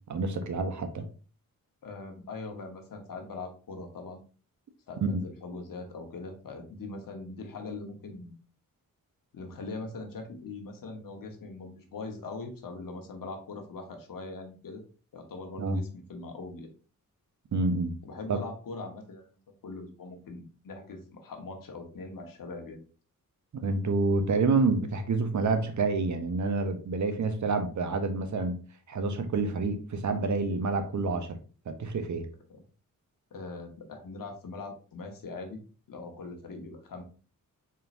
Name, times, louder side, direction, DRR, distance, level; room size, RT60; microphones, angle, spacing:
voice 1, 0.1-1.1 5.0-5.2 15.6-15.8 17.5-17.9 18.3-18.4 23.5-28.6 28.9-31.4 31.7-32.3, right 3 dB, 60° right, 0.7 m, -28 dB
voice 2, 1.8-4.2 4.9-8.3 9.3-14.8 15.1-16.7 18.0-19.4 19.6-22.8 32.5-32.6 33.3-35.6 35.9-37.0, left 3 dB, 75° left, 1.0 m, -41 dB
4.1 x 3.7 x 2.5 m
wide cardioid pair, 90°, 34 cm